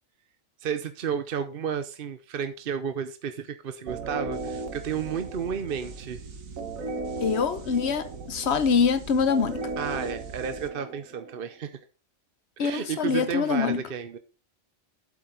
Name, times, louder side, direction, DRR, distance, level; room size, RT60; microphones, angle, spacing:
voice 1, 0.6-6.2 9.8-11.8 12.6-14.2, right 7 dB, 50° right, 0.8 m, -32 dB
sound 1, 3.9-11.5, right 3 dB, 80° right, 1.7 m, -36 dB
voice 2, 7.2-9.7 12.6-13.8, left 6 dB, 55° left, 1.2 m, -24 dB
8.5 x 7.9 x 3.9 m
omnidirectional pair, 1.4 m